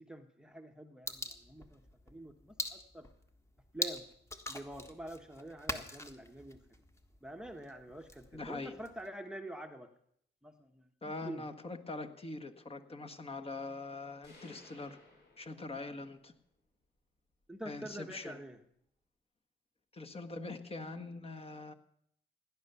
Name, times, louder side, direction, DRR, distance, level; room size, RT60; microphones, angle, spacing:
voice 1, 0.0-3.1 3.7-4.1 4.5-6.6 7.2-9.9 10.4-11.4 17.5-18.6, right 1 dB, 5° right, 7 dB, 1.1 m, -47 dB
sound 1, 1.1-9.1, left 1 dB, 15° left, 1.6 m, -43 dB
voice 2, 8.3-8.7 11.0-15.0 15.4-16.3 17.6-18.4 19.9-21.7, left 3 dB, 30° left, 5 dB, 1.6 m, -43 dB
sound 2, 14.2-16.2, left 2 dB, 60° left, 7.0 m, -59 dB
17.0 x 10.5 x 6.9 m, 0.71 s
cardioid pair, 90°, 20 cm